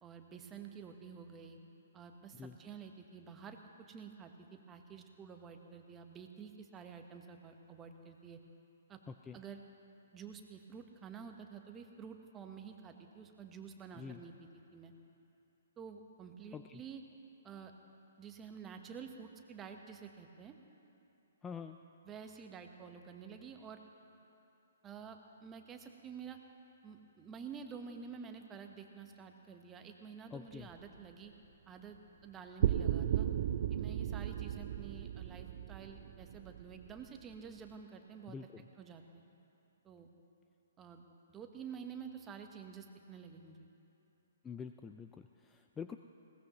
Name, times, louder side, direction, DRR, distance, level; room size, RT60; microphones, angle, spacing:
voice 1, 0.0-1.6 1.9-3.6 3.9-8.4 8.9-9.0 9.3-9.6 10.1-14.3 14.7-14.9 15.8-17.0 17.4-17.7 18.2-20.5 22.0-23.8 24.8-26.4 26.8-31.3 31.7-33.3 33.7-38.4 38.8-39.0 39.8-40.1 40.8-43.7, right 6 dB, 20° right, 4 dB, 1.2 m, -50 dB
voice 2, 9.1-9.4 14.0-14.2 16.5-16.8 21.4-21.8 30.3-30.7 38.3-38.6 44.4-46.0, left 6 dB, 15° left, 7 dB, 0.4 m, -46 dB
sound 1, 32.6-37.0, right 10 dB, 50° right, 0.5 m, -35 dB
20.5 x 17.5 x 3.1 m, 2.8 s
figure-of-eight pair, 125°, 0 cm